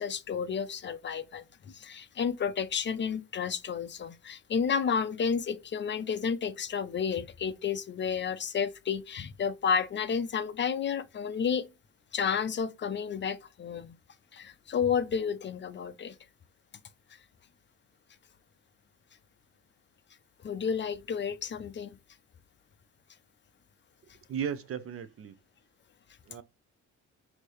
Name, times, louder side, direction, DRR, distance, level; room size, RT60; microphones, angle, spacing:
voice 1, 0.0-11.7 12.1-14.0 14.3-16.1 20.4-22.0, left 6 dB, 40° left, 0.5 m, -31 dB
voice 2, 24.3-25.3 26.3-26.4, right 8 dB, 50° right, 0.5 m, -35 dB
4.5 x 2.8 x 3.0 m
cardioid pair, 90°, 30 cm